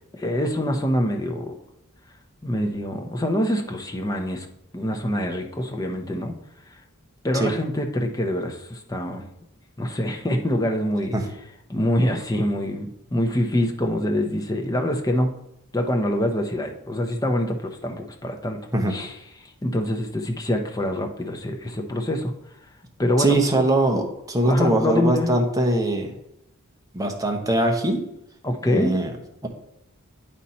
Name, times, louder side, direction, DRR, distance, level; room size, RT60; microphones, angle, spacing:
voice 1, 0.1-1.5 2.4-4.5 4.7-6.4 7.2-9.2 9.8-11.1 11.7-15.4 15.7-18.6 18.9-19.1 19.6-22.3 23.0-23.4 24.5-25.3 28.4-29.0, left 1 dB, 15° left, 3 dB, 0.7 m, -25 dB
voice 2, 23.2-26.1 26.9-28.0 28.7-29.1 29.4-29.5, right 1 dB, 15° right, 2 dB, 0.9 m, -22 dB
8.9 x 4.2 x 4.2 m, 0.81 s
head